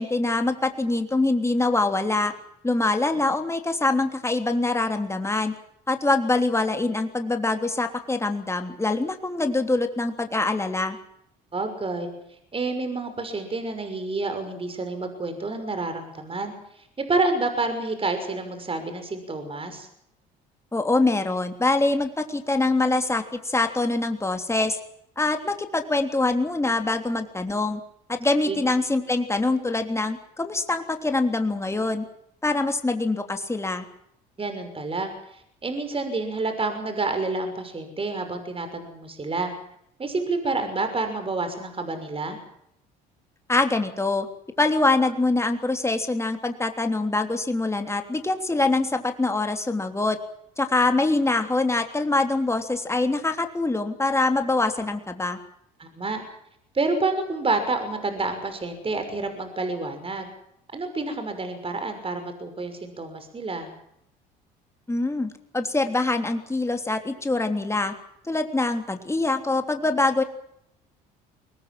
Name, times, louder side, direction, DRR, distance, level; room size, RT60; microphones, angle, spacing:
voice 1, 0.0-2.3 2.6-5.5 5.9-11.0 20.7-24.8 25.2-27.8 28.1-32.0 32.4-33.9 43.5-44.3 44.6-50.2 50.6-55.4 64.9-67.9 68.2-70.2, left 2 dB, 15° left, 5 dB, 3.3 m, -24 dB
voice 2, 11.5-12.1 12.5-19.9 28.5-28.6 34.4-39.5 40.0-42.4 55.8-56.2 56.7-60.3 60.7-63.7, right 3 dB, 30° right, 8 dB, 6.1 m, -29 dB
23.5 x 19.5 x 7.7 m, 0.76 s
supercardioid pair, 70°, 19 cm